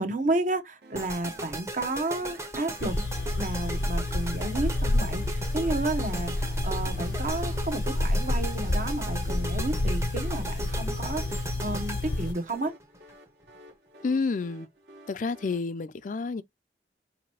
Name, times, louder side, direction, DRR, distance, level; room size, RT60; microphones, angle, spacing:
voice 1, 0.0-3.0 3.4-12.7, right 2 dB, 45° right, 0.9 m, -31 dB
sound 1, 0.8-15.6, right 1 dB, 65° right, 1.3 m, -53 dB
sound 2, 0.9-13.1, right 1 dB, 15° right, 0.8 m, -38 dB
sound 3, 2.8-12.3, left 2 dB, 80° left, 0.7 m, -29 dB
voice 2, 14.0-14.7 15.1-16.4, left 4 dB, 45° left, 0.4 m, -29 dB
5.3 x 2.8 x 2.9 m
head